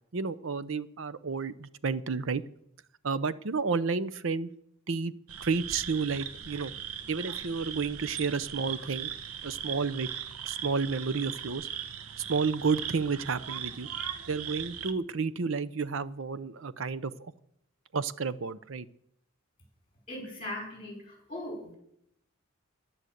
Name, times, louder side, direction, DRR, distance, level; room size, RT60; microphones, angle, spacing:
voice 1, 0.1-2.4 3.0-4.5 4.9-5.1 5.4-6.7 7.1-9.1 9.4-10.1 10.4-11.7 12.3-13.9 14.3-17.1 17.9-18.9, right 4 dB, 60° right, 16 dB, 0.6 m, -31 dB
sound 1, 5.3-14.9, right 9 dB, 90° right, 1.0 m, -39 dB
voice 2, 20.1-21.7, left 1 dB, 25° left, 0 dB, 5.5 m, -39 dB
11.0 x 10.0 x 8.0 m, 0.73 s
head